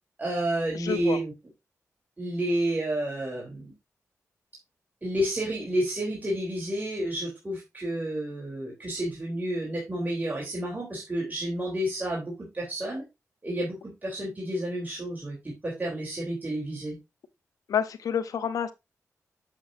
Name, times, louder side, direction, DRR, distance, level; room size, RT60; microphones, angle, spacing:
voice 1, 0.2-1.3 2.2-3.7 5.0-13.0 13.4-13.7 14.0-15.4 15.6-17.0, right 1 dB, 30° right, 3.5 m, -30 dB
voice 2, 0.7-1.2 17.7-18.7, left 8 dB, 90° left, 0.7 m, -28 dB
7.5 x 7.5 x 2.7 m
cardioid pair, 55°, 6 cm